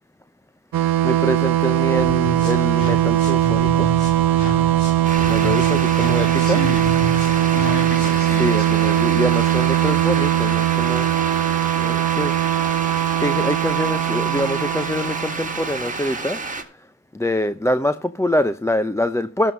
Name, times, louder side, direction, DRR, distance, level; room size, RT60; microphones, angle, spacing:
sound 1, 0.7-16.1, right 13 dB, 60° right, 0.8 m, -20 dB
voice 1, 1.0-3.9 5.2-6.6 8.3-11.1 11.8-12.8 13.2-16.7 17.1-19.5, left 1 dB, 5° left, 0.6 m, -25 dB
sound 2, 1.9-8.3, left 1 dB, 85° left, 2.2 m, -31 dB
sound 3, 5.0-16.6, right 3 dB, 20° right, 1.8 m, -30 dB
voice 2, 5.9-6.9 7.5-9.0, left 3 dB, 35° left, 2.9 m, -32 dB
12.5 x 5.6 x 6.2 m
supercardioid pair, 45°, 40 cm